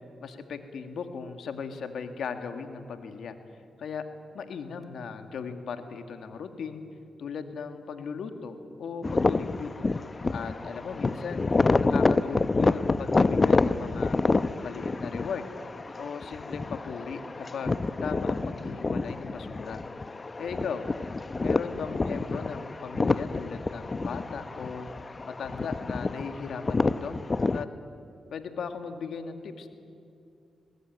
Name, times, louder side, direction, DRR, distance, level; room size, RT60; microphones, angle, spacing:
voice 1, 0.2-3.4 3.8-4.1 4.3-6.8 7.2-8.5 8.8-9.7 10.3-11.5 11.9-14.2 14.6-15.5 16.0-19.8 20.4-20.9 21.4-24.9 25.2-27.1 27.5-27.7 28.3-29.7, left 6 dB, 75° left, 7 dB, 2.0 m, -37 dB
sound 1, 9.0-27.6, left 3 dB, 35° left, 0.9 m, -28 dB
22.5 x 19.0 x 9.5 m, 2.6 s
supercardioid pair, 50°, 0 cm